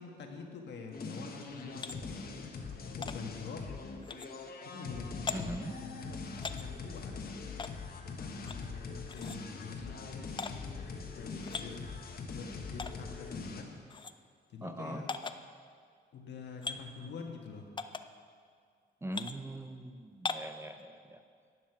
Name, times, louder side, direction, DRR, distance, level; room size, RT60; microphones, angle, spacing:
voice 1, 0.0-2.3 2.8-3.7 4.6-7.6 7.9-10.1 10.7-11.8 12.3-13.7 14.5-15.1 16.1-17.7, left 4 dB, 80° left, 2 dB, 1.4 m, -46 dB
sound 1, 0.9-13.6, left 4 dB, 60° left, 1.2 m, -42 dB
sound 2, 1.8-2.0 3.0-3.2 4.0-4.3 5.3-5.4 6.4-6.6 7.6-7.7 8.4-8.6 9.1-9.4 10.4-10.5 11.4-11.7 12.8-12.9 13.9-14.1 15.1-15.4 16.6-16.8 17.8-18.0 19.1-19.3 20.2-20.5, left 4 dB, 25° left, 0.5 m, -38 dB
voice 2, 5.3-5.7 14.6-15.0 19.0-21.2, right 1 dB, 15° right, 7 dB, 0.6 m, -41 dB
11.0 x 7.5 x 6.0 m, 2.1 s
cardioid pair, 105°, 18 cm